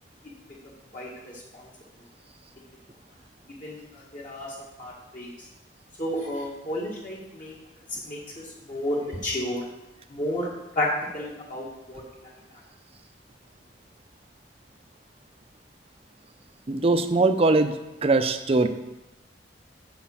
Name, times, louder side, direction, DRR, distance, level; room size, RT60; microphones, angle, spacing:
voice 1, 3.6-5.3 6.0-7.6 8.0-8.2 8.7-9.6 10.1-10.5 10.8-10.9 11.1-12.3, left 1 dB, 50° left, -5 dB, 1.9 m, -31 dB
voice 2, 16.7-17.7 18.0-18.7, right 3 dB, 35° right, 8 dB, 0.6 m, -21 dB
7.7 x 5.2 x 7.1 m, 0.97 s
head